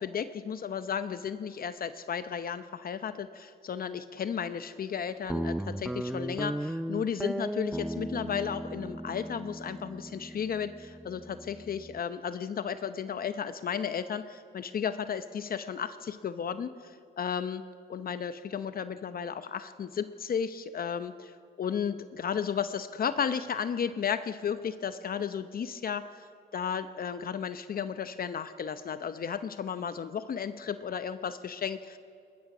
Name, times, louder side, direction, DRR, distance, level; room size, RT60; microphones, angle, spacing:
voice 1, 0.0-17.6 17.9-26.3 26.5-32.0, left 7 dB, 50° left, 11 dB, 0.8 m, -34 dB
Guitar, 5.3-12.0, right 1 dB, 5° right, 0.5 m, -36 dB
21.5 x 20.0 x 6.1 m, 2.4 s
cardioid pair, 90°, 20 cm